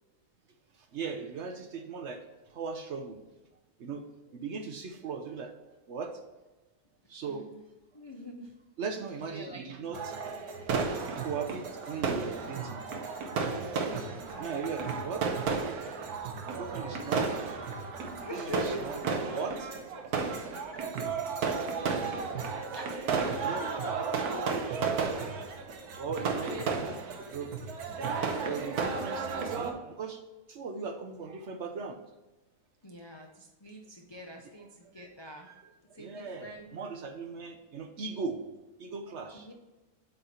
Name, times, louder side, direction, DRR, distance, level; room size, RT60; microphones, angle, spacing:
voice 1, 0.9-2.2 2.5-3.2 3.8-4.0 4.3-5.5 5.9-6.1 7.1-7.5 8.8-10.0 11.2-12.8 14.4-15.2 16.5-17.4 18.2-20.0 23.3-23.7 24.2-24.3 26.0-27.5 28.5-30.2 30.5-32.0 35.4-38.4 38.8-39.5, right 5 dB, 60° right, 6 dB, 0.9 m, -38 dB
voice 2, 7.3-7.6 7.9-8.5 9.3-9.9 13.8-15.2 18.2-19.1 20.5-20.9 22.7-24.7 26.4-27.0 32.8-35.5 35.9-36.7 39.3-39.5, left 1 dB, 40° left, 0 dB, 0.4 m, -44 dB
sound 1, 9.9-29.7, right 5 dB, 90° right, 1.4 m, -33 dB
7.7 x 4.1 x 4.3 m, 1.1 s
omnidirectional pair, 1.6 m